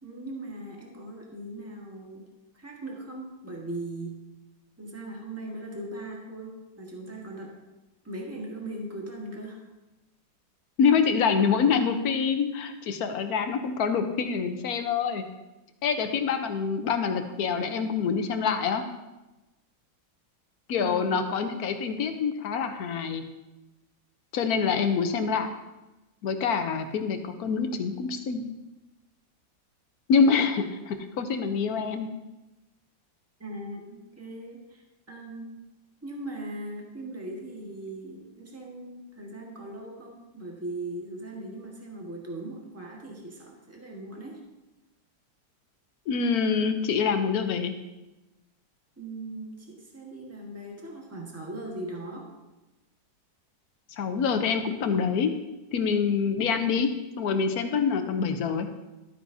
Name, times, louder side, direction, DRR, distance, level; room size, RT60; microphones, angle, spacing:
voice 1, 0.0-2.2 2.5-4.2 4.8-7.6 8.0-9.6 20.8-21.1 33.4-35.5 36.0-44.4 49.0-52.3, right 1 dB, 10° right, -1 dB, 1.3 m, -39 dB
voice 2, 10.8-15.2 15.8-18.8 20.7-23.2 24.3-25.5 26.2-28.4 30.1-32.1 46.1-47.7 53.9-55.3 55.7-56.9 57.2-58.7, left 6 dB, 65° left, 7 dB, 1.1 m, -26 dB
12.5 x 9.1 x 2.7 m, 1.0 s
omnidirectional pair, 2.1 m